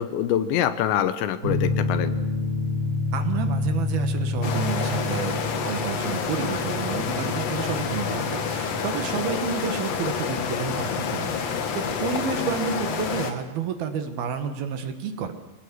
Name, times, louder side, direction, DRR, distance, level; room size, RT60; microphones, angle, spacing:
voice 1, 0.0-2.1, left 10 dB, 80° left, 11 dB, 3.4 m, -25 dB
sound 1, 1.4-12.6, left 2 dB, 30° right, 1.9 m, -30 dB
voice 2, 3.1-15.3, right 6 dB, 65° right, 7 dB, 3.1 m, -30 dB
sound 2, 4.4-13.3, left 6 dB, 55° left, 1.9 m, -28 dB
25.0 x 18.5 x 8.1 m, 1.1 s
omnidirectional pair, 5.1 m